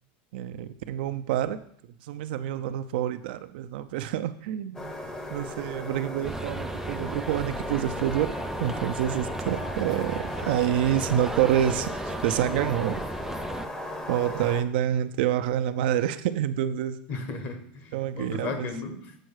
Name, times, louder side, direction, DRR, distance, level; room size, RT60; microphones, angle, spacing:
voice 1, 0.3-1.6 2.0-4.9 5.3-13.1 14.1-17.0 17.9-18.7, right 11 dB, 70° right, 11 dB, 0.5 m, -27 dB
sound 1, 4.7-14.6, left 1 dB, 10° left, 0.8 m, -36 dB
sound 2, 6.2-13.7, right 3 dB, 5° right, 0.3 m, -36 dB
voice 2, 17.1-19.1, left 3 dB, 40° left, 7 dB, 1.2 m, -35 dB
7.7 x 4.5 x 4.8 m, 0.64 s
supercardioid pair, 140°, 6 cm